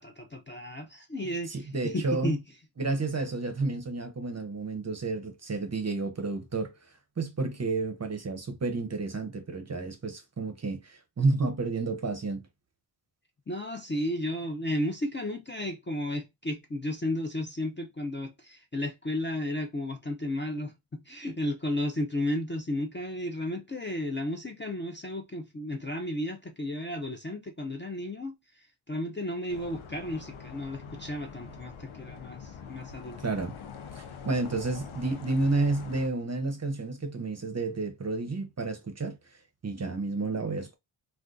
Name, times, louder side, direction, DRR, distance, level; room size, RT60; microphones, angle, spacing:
voice 1, 0.0-2.4 13.5-33.2, left 1 dB, 25° left, 0.4 m, -33 dB
voice 2, 1.5-2.4 2.8-6.7 7.2-12.4 33.2-33.5 34.0-39.2 39.6-40.8, right 3 dB, 35° right, 0.6 m, -31 dB
sound 1, 29.5-36.1, left 6 dB, 75° left, 0.6 m, -44 dB
2.4 x 2.3 x 3.6 m
wide cardioid pair, 130°, 50 cm